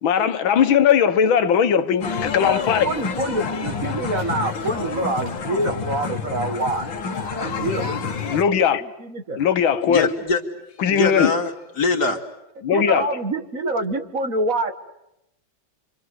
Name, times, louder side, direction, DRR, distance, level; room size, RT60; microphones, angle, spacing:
voice 1, 0.0-2.9 8.3-8.8 9.4-10.1 10.8-11.3 12.6-13.1, left 8 dB, 90° left, 2.0 m, -19 dB
sound 1, 2.0-8.4, left 5 dB, 70° left, 2.3 m, -28 dB
voice 2, 2.8-6.9 7.3-8.3 9.0-9.4 12.7-14.7, right 2 dB, 45° right, 1.9 m, -26 dB
voice 3, 9.8-10.4 10.9-12.2, left 4 dB, 55° left, 2.9 m, -22 dB
28.0 x 25.0 x 8.1 m
omnidirectional pair, 2.1 m